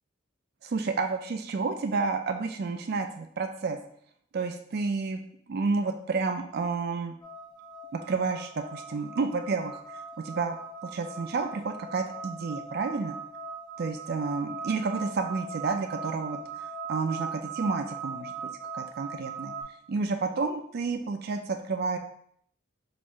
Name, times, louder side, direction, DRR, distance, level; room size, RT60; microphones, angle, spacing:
voice 1, 0.6-3.8 4.3-5.2 5.5-7.2 7.9-9.8 10.2-10.6 10.8-13.2 13.8-19.5 19.9-22.0, right 4 dB, 50° right, 5 dB, 0.4 m, -30 dB
sound 1, 7.2-19.6, right 4 dB, 20° left, 0.9 m, -40 dB
4.3 x 2.5 x 4.6 m, 0.66 s
head